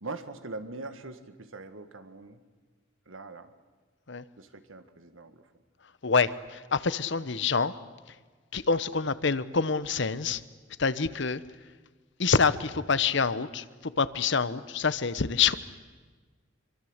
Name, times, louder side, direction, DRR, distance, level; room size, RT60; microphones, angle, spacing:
voice 1, 0.0-2.4 3.1-3.5 4.4-5.5, right 3 dB, 90° right, 10 dB, 1.9 m, -42 dB
voice 2, 6.0-7.7 8.5-10.4 10.8-11.4 12.2-15.5, left 5 dB, 60° left, 15 dB, 1.0 m, -26 dB
26.0 x 24.0 x 8.1 m, 1.4 s
head